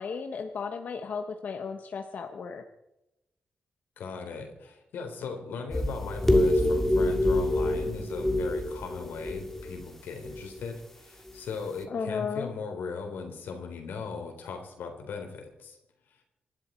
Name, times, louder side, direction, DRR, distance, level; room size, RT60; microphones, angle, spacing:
voice 1, 0.0-2.6 11.9-12.5, left 5 dB, 55° left, 5 dB, 1.1 m, -34 dB
voice 2, 4.0-15.8, left 5 dB, 85° left, 4 dB, 3.8 m, -38 dB
sound 1, 5.7-9.8 10.2-10.6, left 1 dB, 10° left, 2.0 m, -26 dB
26.0 x 12.0 x 4.4 m, 0.91 s
wide cardioid pair, 125°, 3 cm